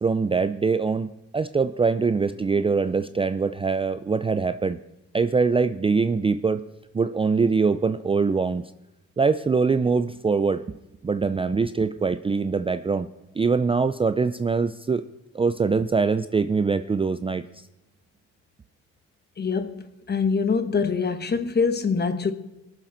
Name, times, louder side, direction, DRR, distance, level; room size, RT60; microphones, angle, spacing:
voice 1, 0.0-4.8 5.1-6.6 6.9-8.6 9.2-10.6 11.0-13.1 13.4-15.0 15.3-17.4, right 4 dB, 20° right, 0.4 m, -23 dB
voice 2, 19.4-22.3, left 5 dB, 35° left, 1.1 m, -24 dB
22.0 x 7.5 x 3.9 m
cardioid pair, 90°, 30 cm